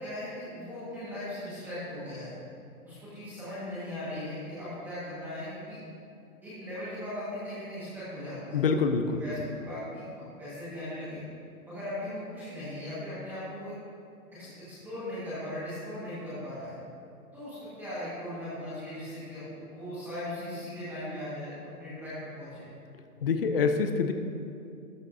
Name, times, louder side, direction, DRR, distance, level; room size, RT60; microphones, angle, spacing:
voice 1, 0.0-2.3 2.8-5.8 6.4-8.6 9.2-11.2 11.7-13.7 14.3-16.8 17.3-21.5 21.8-22.7, left 1 dB, 5° right, -13 dB, 1.5 m, -38 dB
voice 2, 8.5-9.2 23.2-24.1, left 5 dB, 40° left, 6 dB, 0.6 m, -25 dB
13.0 x 10.0 x 2.7 m, 2.5 s
hypercardioid pair, 170°, 44 cm